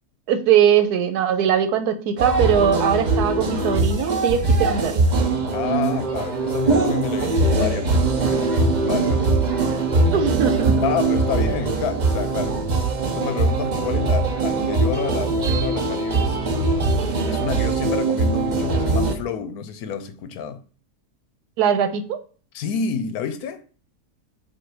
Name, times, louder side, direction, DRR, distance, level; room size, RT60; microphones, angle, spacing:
voice 1, 0.3-5.1 10.1-10.8 21.6-22.2, right 8 dB, 85° right, 1.3 m, -20 dB
sound 1, 2.2-19.1, right 3 dB, 45° right, 0.6 m, -21 dB
voice 2, 5.5-9.5 10.8-12.6 13.0-16.4 17.3-20.6 22.5-23.6, left 7 dB, 80° left, 1.1 m, -29 dB
7.5 x 2.7 x 4.7 m
omnidirectional pair, 1.6 m